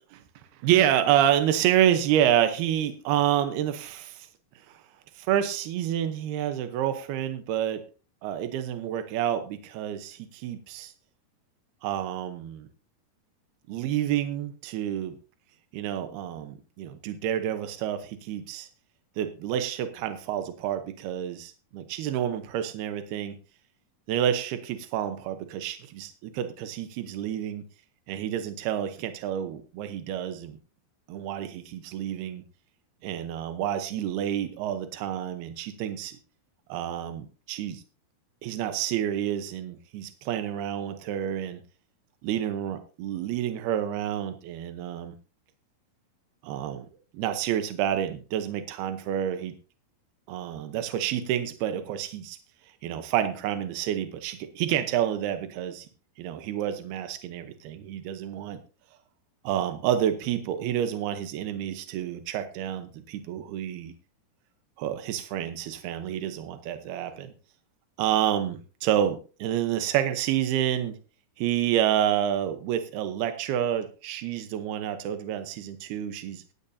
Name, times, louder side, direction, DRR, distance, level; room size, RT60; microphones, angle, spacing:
voice 1, 0.6-4.3 4.7-4.8 5.1-7.8 8.2-10.9 11.8-12.7 13.7-15.2 15.7-18.7 19.2-23.4 24.1-27.6 28.1-30.6 31.1-32.4 33.0-36.2 36.7-37.8 38.4-41.6 42.2-45.1 46.4-46.9 47.1-49.5 50.3-52.4 52.8-55.9 56.2-58.6 59.4-63.9 64.8-67.3 68.0-71.0 71.4-76.4, right 10 dB, 85° right, 8 dB, 3.0 m, -28 dB
17.0 x 12.5 x 2.7 m, 0.35 s
omnidirectional pair, 4.5 m